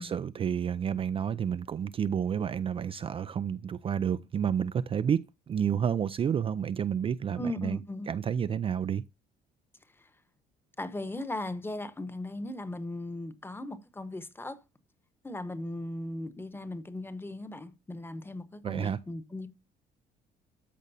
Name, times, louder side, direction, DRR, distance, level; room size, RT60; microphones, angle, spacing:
voice 1, 0.0-7.8 8.1-9.0 18.6-19.0, right 8 dB, 35° right, 0.4 m, -30 dB
voice 2, 7.4-8.1 10.0-10.1 10.8-14.6 15.2-19.5, left 1 dB, 15° left, 1.1 m, -37 dB
13.5 x 5.2 x 2.7 m
cardioid pair, 110°, 17 cm